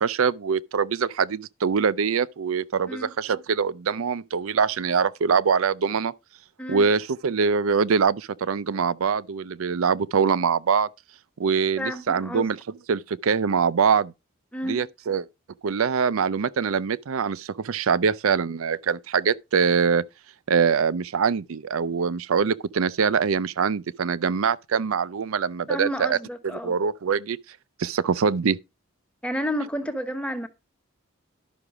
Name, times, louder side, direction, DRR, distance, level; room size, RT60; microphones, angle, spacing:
voice 1, 0.0-6.1 6.7-10.9 11.4-12.6 12.9-14.1 14.6-15.3 15.6-20.0 20.5-26.2 26.6-27.4 27.8-28.6, right 6 dB, 80° right, 0.5 m, -23 dB
voice 2, 11.8-12.5 14.5-14.8 25.7-26.8 29.2-30.5, equal, 5° left, 1.1 m, -30 dB
11.5 x 5.9 x 4.9 m
head